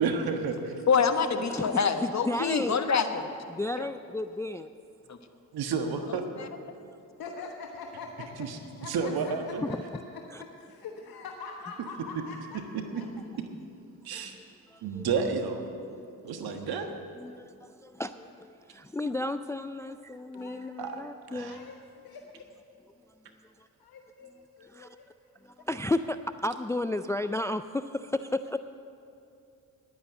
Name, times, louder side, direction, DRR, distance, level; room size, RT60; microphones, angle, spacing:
voice 1, 0.0-0.8 5.5-6.2 8.4-8.6 8.8-9.6 12.9-13.0 14.0-14.3 14.8-15.7 16.2-16.9 20.8-21.0 21.3-21.6, right 5 dB, 70° right, 5 dB, 1.4 m, -30 dB
voice 2, 0.9-3.3 3.8-3.9 5.1-5.2 6.4-6.5, left 5 dB, 45° left, 8 dB, 1.2 m, -26 dB
voice 3, 1.5-2.7 3.5-4.7 9.6-9.8 10.3-10.4 14.1-15.3 15.9-16.6 17.2-21.7 23.6-23.7 24.6-24.9 25.4-28.6, left 2 dB, 10° left, 11 dB, 0.3 m, -34 dB
voice 4, 7.2-9.8 10.1-12.6 12.9-13.1 17.3-17.4 19.9-20.0 20.3-21.1 21.4-21.8 22.0-22.5 23.8-25.1, left 4 dB, 65° left, 2 dB, 1.1 m, -44 dB
11.0 x 9.7 x 7.9 m, 2.6 s
hypercardioid pair, 50°, 39 cm